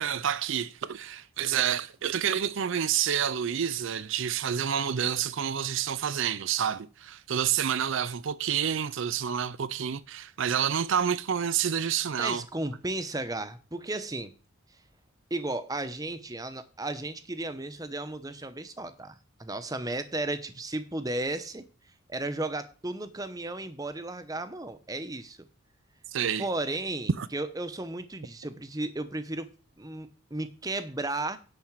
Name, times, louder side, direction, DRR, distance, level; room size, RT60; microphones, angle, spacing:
voice 1, 0.0-12.4 26.1-26.5 27.2-27.3, right 8 dB, 60° right, 0.4 m, -28 dB
voice 2, 12.2-14.3 15.3-21.7 22.1-25.4 26.4-29.5 29.8-31.4, right 2 dB, 15° right, 0.8 m, -34 dB
10.5 x 4.3 x 7.3 m
head